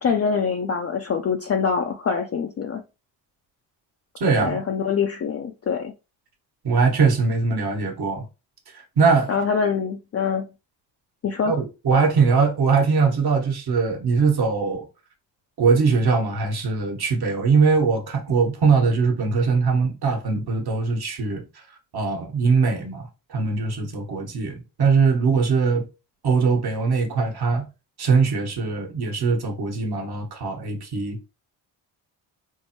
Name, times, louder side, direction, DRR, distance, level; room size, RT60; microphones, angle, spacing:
voice 1, 0.0-2.8 4.4-5.9 9.3-10.4 11.2-11.5, left 6 dB, 35° left, 0.5 m, -24 dB
voice 2, 4.2-4.6 6.6-8.2 8.7-9.3 11.4-14.9 15.6-21.4 21.9-25.9 26.2-27.7 28.0-31.2, right 4 dB, 55° right, 1.3 m, -21 dB
4.4 x 2.0 x 2.9 m
supercardioid pair, 60°, 47 cm